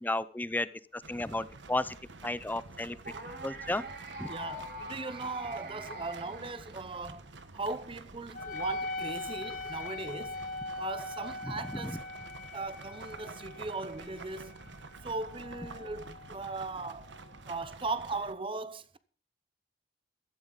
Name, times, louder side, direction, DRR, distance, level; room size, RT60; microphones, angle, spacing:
voice 1, 0.0-2.0 2.2-3.0 3.4-3.8 4.2-4.3 11.4-12.0, left 2 dB, 10° left, 0.5 m, -33 dB
sound 1, 1.0-18.3, right 3 dB, 85° right, 1.3 m, -49 dB
sound 2, 3.0-7.2, right 1 dB, 60° right, 3.4 m, -44 dB
voice 2, 4.3-7.2 7.5-10.4 10.8-12.0 12.5-14.6 15.0-17.1 17.4-19.0, right 3 dB, 30° right, 0.8 m, -38 dB
Wind instrument woodwind instrument, 8.3-17.3, left 2 dB, 50° left, 2.0 m, -41 dB
16.0 x 13.5 x 4.0 m
head